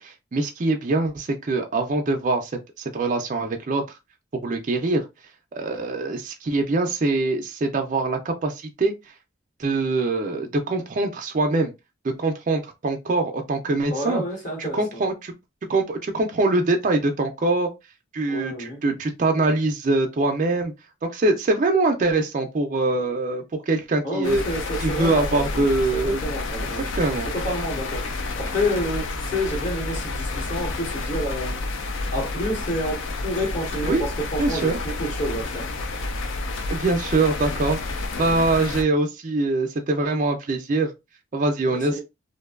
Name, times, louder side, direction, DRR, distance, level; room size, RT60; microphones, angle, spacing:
voice 1, 0.0-2.5 2.8-3.8 4.4-5.0 5.5-8.9 9.6-11.7 12.0-14.2 14.6-15.3 15.7-17.7 18.1-20.7 21.0-24.4 24.8-26.2 26.9-27.3 33.8-34.0 34.4-34.8 36.7-37.8 38.2-40.9 41.3-42.0, right 2 dB, 40° right, 0.4 m, -23 dB
voice 2, 13.9-15.0 18.3-18.8 22.9-23.1 24.0-25.6 25.9-26.9 27.3-31.6 32.1-35.7 38.1-38.4 41.7-42.0, equal, 40° left, 1.0 m, -29 dB
sound 1, 24.2-38.8, left 3 dB, 65° left, 0.4 m, -30 dB
2.5 x 2.2 x 2.3 m
head